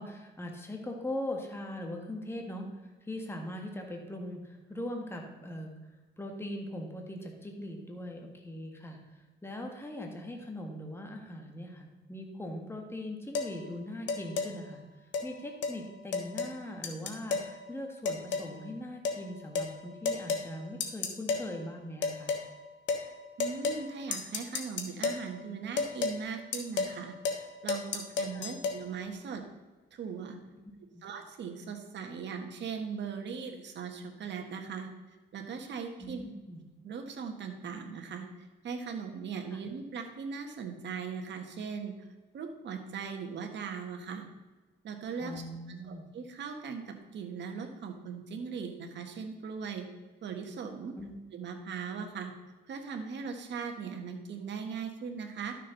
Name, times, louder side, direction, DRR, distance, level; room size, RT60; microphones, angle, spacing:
voice 1, 0.0-5.7 6.2-14.8 15.2-22.4 28.3-28.5 30.5-30.6 30.9-31.0 36.0-36.6 45.2-46.0 51.0-51.1, left 1 dB, 10° left, 2 dB, 1.7 m, -40 dB
sound 1, 13.3-13.5 14.1-14.5 15.1-15.3 15.6-15.8 16.1-16.6 16.8-17.5 18.1-18.5 19.0-19.2 19.6-19.7 20.1-20.5 20.8-21.5 22.0-22.5 22.9-23.1 23.4-23.9 24.1-25.2 25.8-26.2 26.5-27.0 27.2-27.4 27.7-28.8, left 4 dB, 65° left, 1.4 m, -32 dB
voice 2, 23.4-29.4 29.9-30.4 31.0-34.9 35.3-36.2 36.8-41.9 42.3-44.3 44.8-45.4 45.8-49.8 50.2-50.9 51.3-52.3 52.7-55.5, right 6 dB, 65° right, 4 dB, 1.6 m, -39 dB
12.0 x 6.5 x 4.0 m, 1.2 s
cardioid pair, 90°, 20 cm